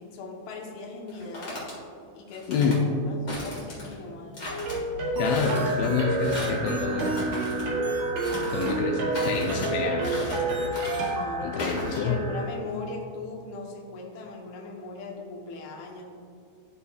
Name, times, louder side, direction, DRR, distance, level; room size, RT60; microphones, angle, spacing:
voice 1, 0.0-1.6 2.1-2.7 3.1-4.5 11.1-16.0, left 3 dB, 65° left, -1 dB, 2.0 m, -39 dB
sound 1, 1.1-1.7 2.3-2.8 3.3-3.9 4.3-4.8 5.2-5.7 6.2-6.6 7.0-7.7 8.2-8.8 9.1-9.7 10.0-10.4 10.7-11.1 11.6-12.0, left 1 dB, 35° left, 1.4 m, -37 dB
voice 2, 2.5-2.9 5.1-7.1 8.5-10.8 11.4-12.2, left 5 dB, 85° left, 2 dB, 2.4 m, -27 dB
sound 2, 4.4-11.3, right 2 dB, 60° right, 2.3 m, -29 dB
sound 3, 5.4-12.5, right 5 dB, 75° right, 2.2 m, -39 dB
12.5 x 5.5 x 2.3 m, 2.4 s
omnidirectional pair, 4.3 m